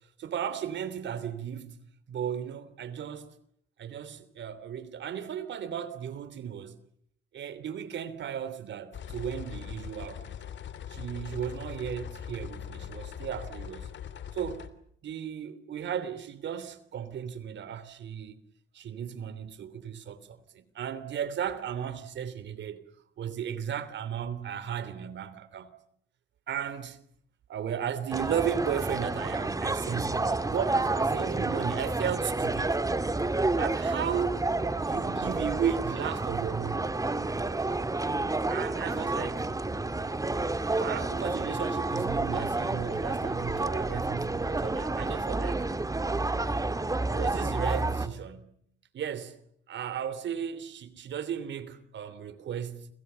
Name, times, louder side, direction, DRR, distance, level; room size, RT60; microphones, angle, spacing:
voice 1, 0.2-1.8 2.1-3.3 3.8-6.8 7.3-10.4 10.9-13.9 14.3-14.7 15.0-18.4 18.7-22.9 23.2-25.8 26.5-27.0 27.5-32.8 33.6-34.4 34.8-37.0 38.5-39.5 40.8-45.7 47.1-48.6 48.9-49.3 49.7-52.9, right 8 dB, 65° right, 3.1 m, -35 dB
sound 1, 8.9-14.7, left 9 dB, 65° left, 2.8 m, -41 dB
sound 2, 28.1-48.1, right 2 dB, 15° right, 2.1 m, -30 dB
29.5 x 26.5 x 7.0 m
cardioid pair, 90°, 20 cm